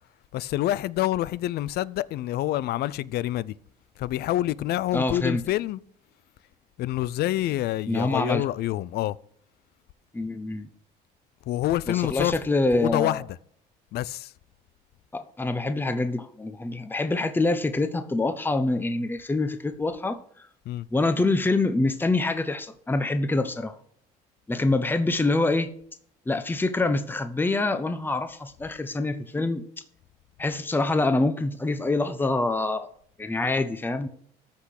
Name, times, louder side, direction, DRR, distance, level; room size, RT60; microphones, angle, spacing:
voice 1, 0.3-3.5 4.0-5.8 6.8-9.2 11.5-12.3 12.7-13.4 13.9-14.3 20.7-20.9, left 14 dB, 70° left, 0.5 m, -27 dB
voice 2, 4.9-5.4 7.9-8.4 10.1-10.7 11.9-13.2 15.1-20.5 20.9-23.7 24.5-25.7 26.3-29.6 30.4-32.9 33.2-34.1, left 2 dB, 10° left, 1.0 m, -25 dB
14.0 x 6.0 x 6.5 m
cardioid pair, 110°, 17 cm